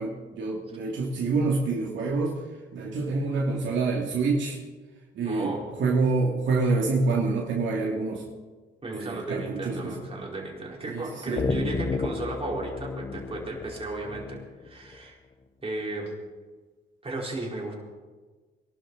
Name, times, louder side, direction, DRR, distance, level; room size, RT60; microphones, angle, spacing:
voice 1, 0.0-2.4 2.7-4.6 5.1-5.5 5.8-8.2 8.9-10.0 10.9-11.5, right 3 dB, 70° right, -2 dB, 2.7 m, -27 dB
voice 2, 5.2-5.7 8.8-15.2 15.6-16.1 17.0-17.7, right 2 dB, 30° right, -2 dB, 4.8 m, -34 dB
sound 1, 11.4-15.0, left 4 dB, 30° left, 1.0 m, -32 dB
23.5 x 12.5 x 4.2 m, 1.3 s
cardioid pair, 90°, 20 cm